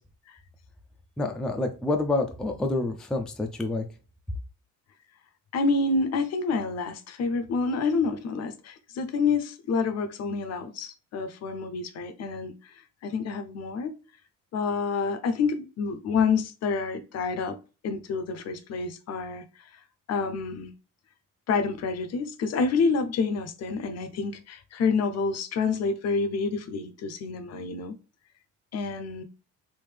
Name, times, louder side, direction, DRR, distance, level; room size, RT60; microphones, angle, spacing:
voice 1, 1.2-3.8, left 2 dB, ahead, 0.3 m, -28 dB
voice 2, 5.5-12.5 13.0-13.9 14.5-17.6 17.8-19.4 20.1-20.7 21.5-28.0 28.7-29.2, left 4 dB, 55° left, 0.6 m, -28 dB
3.5 x 2.6 x 3.2 m
cardioid pair, 130°, 32 cm